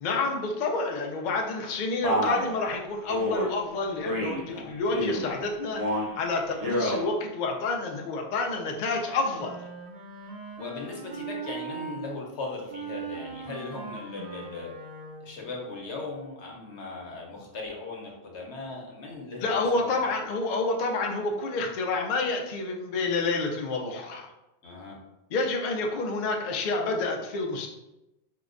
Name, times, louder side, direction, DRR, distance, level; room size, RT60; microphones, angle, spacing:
voice 1, 0.0-9.6 19.4-24.3 25.3-27.7, left 3 dB, 55° left, 1 dB, 0.6 m, -29 dB
Male speech man speaking, 2.0-2.5 3.1-3.5 4.0-4.4 4.9-5.3 5.7-6.1 6.5-7.0, equal, 25° right, 0.6 m, -28 dB
voice 2, 4.5-4.8 10.6-14.7 15.2-20.3 24.6-25.0, left 3 dB, 85° left, -1 dB, 1.0 m, -38 dB
Wind instrument woodwind instrument, 8.8-12.0 12.7-15.4, right 5 dB, 60° right, 0.8 m, -40 dB
4.6 x 2.1 x 2.5 m, 0.94 s
omnidirectional pair, 1.1 m